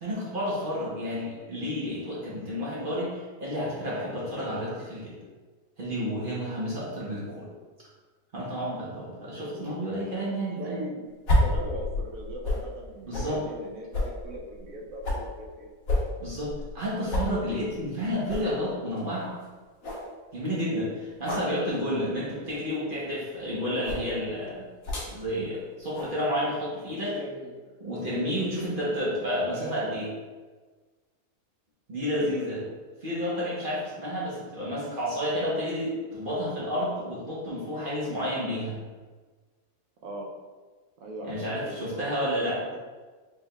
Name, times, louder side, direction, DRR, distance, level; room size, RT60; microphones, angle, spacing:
voice 1, 0.0-5.2 5.8-7.5 8.3-10.8 13.1-13.4 16.2-19.3 20.3-24.7 25.1-27.2 27.8-30.1 31.9-32.6 33.0-38.8 41.2-42.6, equal, 40° right, -7 dB, 0.9 m, -30 dB
voice 2, 9.5-10.0 10.6-10.9 11.4-15.7 27.1-27.8 29.5-29.7 32.1-32.5 40.0-40.3 41.0-42.8, right 1 dB, 70° right, 0 dB, 0.9 m, -40 dB
sound 1, 11.3-12.7 13.1-13.3 13.9-15.3 15.9-16.8 17.1-17.3 17.7-17.8 18.3-18.5 19.0-19.1 19.4-19.5 19.8-20.1 21.2-21.5 22.4-22.7 23.8-24.1 24.8-25.1 25.9-26.1, left 1 dB, 65° left, 1.4 m, -28 dB
4.5 x 3.3 x 2.2 m, 1.4 s
omnidirectional pair, 1.6 m